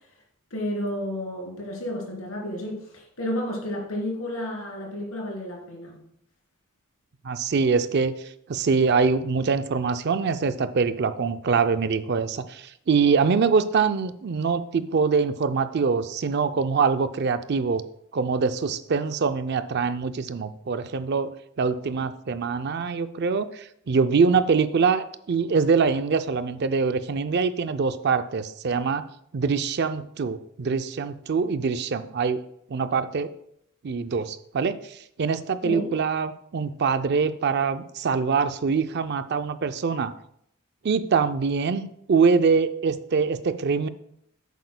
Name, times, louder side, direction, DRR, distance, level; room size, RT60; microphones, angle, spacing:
voice 1, 0.5-6.0 35.6-35.9, left 1 dB, 80° left, -2 dB, 3.3 m, -31 dB
voice 2, 7.2-8.1 8.5-17.8 18.1-21.3 21.6-29.0 29.3-32.4 32.7-33.3 33.8-40.1 40.8-43.9, right 5 dB, 50° right, 11 dB, 0.4 m, -24 dB
10.5 x 8.2 x 2.2 m, 0.71 s
head